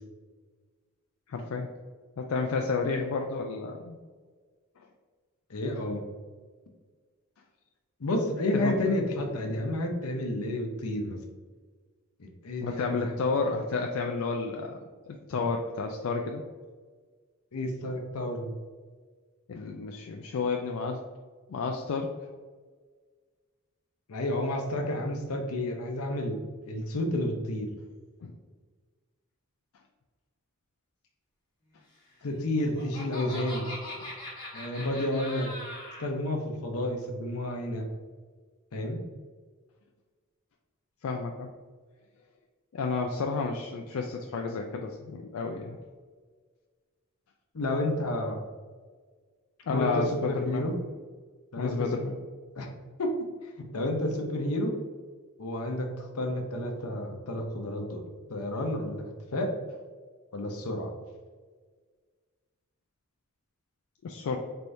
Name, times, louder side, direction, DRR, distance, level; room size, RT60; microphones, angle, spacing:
voice 1, 1.3-1.7 2.2-4.0 8.5-8.7 12.6-14.8 15.1-16.4 19.5-21.0 21.5-22.1 28.2-28.3 41.0-41.5 42.7-45.8 49.7-50.7 51.6-52.2 64.0-64.4, left 4 dB, 70° left, 2 dB, 0.4 m, -31 dB
voice 2, 5.5-6.0 8.0-11.2 12.2-13.1 17.5-18.5 24.1-26.4 26.7-27.7 32.2-33.7 34.5-35.5 36.0-37.9 38.7-39.0 47.5-48.4 49.7-50.7 51.5-51.9 52.5-52.7 53.0-53.1 53.4-54.7 55.4-58.0 58.3-59.0 59.3-59.5 60.3-60.9, left 1 dB, 90° left, 3 dB, 0.7 m, -30 dB
Laughter, 32.3-36.1, left 1 dB, 20° left, 1.2 m, -41 dB
4.3 x 3.4 x 2.6 m, 1.5 s
head